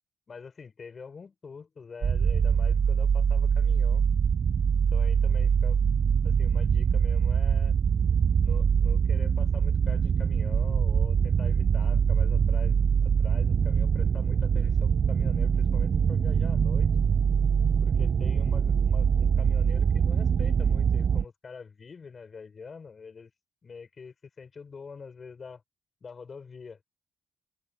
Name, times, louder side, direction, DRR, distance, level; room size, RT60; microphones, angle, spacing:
voice 1, 0.3-4.0 4.9-5.8 6.2-7.7 8.4-12.8 13.0-16.9 17.8-23.3 23.6-25.6 26.0-26.8, left 5 dB, 40° left, 5.7 m, -45 dB
sound 1, 2.0-21.2, right 7 dB, 50° right, 0.4 m, -23 dB
cardioid pair, 90°, 0 cm